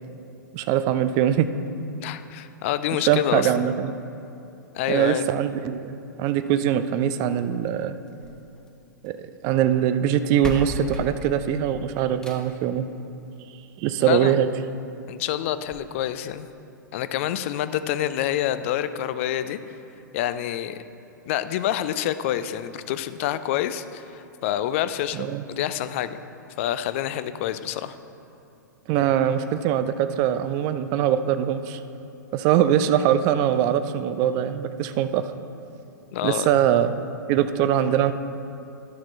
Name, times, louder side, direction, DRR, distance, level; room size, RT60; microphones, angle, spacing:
voice 1, 0.5-1.5 3.0-3.9 4.9-7.9 9.0-9.1 9.4-12.8 13.8-14.5 25.1-25.4 28.9-31.8 32.3-35.2 36.2-36.9 37.3-38.1, right 10 dB, 30° right, 11 dB, 0.3 m, -22 dB
voice 2, 2.0-3.7 4.7-5.3 14.1-14.4 15.1-16.5 16.9-19.6 20.1-20.8 21.3-26.2 26.6-28.0 36.1-36.5, left 11 dB, 40° left, 12 dB, 0.4 m, -27 dB
sound 1, 8.0-9.3 10.1-10.2 10.4-12.7 14.0-14.1 14.6-14.7 15.0-15.1 15.7-15.8, left 1 dB, 5° left, 0.8 m, -36 dB
11.5 x 5.9 x 4.4 m, 2.9 s
figure-of-eight pair, 105°, 11 cm